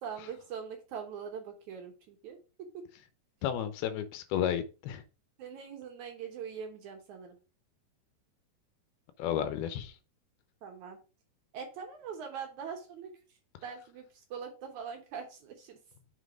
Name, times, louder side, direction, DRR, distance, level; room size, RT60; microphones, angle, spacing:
voice 1, 0.0-2.4 5.4-7.3 10.6-11.0 11.5-13.1 13.6-15.8, right 7 dB, 65° right, 4 dB, 2.1 m, -42 dB
voice 2, 3.4-5.0 9.2-9.9, left 10 dB, 85° left, 11 dB, 2.8 m, -32 dB
7.3 x 4.0 x 4.9 m, 0.33 s
omnidirectional pair, 4.3 m